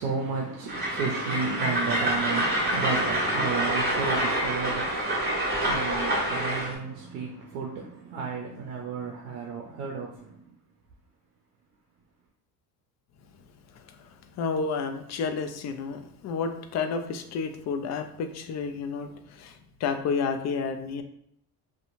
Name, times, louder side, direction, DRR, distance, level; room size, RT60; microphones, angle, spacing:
voice 1, 0.0-10.5, right 5 dB, 90° right, 0.6 m, -33 dB
Train, 0.7-6.7, right 1 dB, 25° right, 1.3 m, -27 dB
voice 2, 13.8-14.1 14.4-21.0, left 5 dB, 40° left, 0.4 m, -31 dB
2.8 x 2.2 x 2.6 m
supercardioid pair, 70°, 43 cm